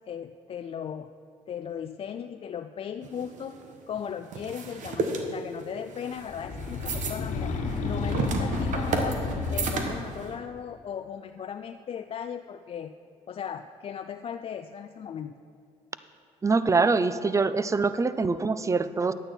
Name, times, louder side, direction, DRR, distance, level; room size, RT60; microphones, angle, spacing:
voice 1, 0.1-1.1 1.5-3.6 3.9-9.2 9.5-12.9 13.3-15.4, left 8 dB, 45° left, 8 dB, 0.4 m, -37 dB
sound 1, 3.0-10.3, right 4 dB, 65° right, 1.2 m, -33 dB
sound 2, 6.2-10.2, left 3 dB, 60° left, 1.2 m, -31 dB
voice 2, 16.4-19.1, right 4 dB, 20° right, 13 dB, 0.5 m, -24 dB
10.5 x 8.7 x 4.4 m, 2.5 s
supercardioid pair, 70°, 14 cm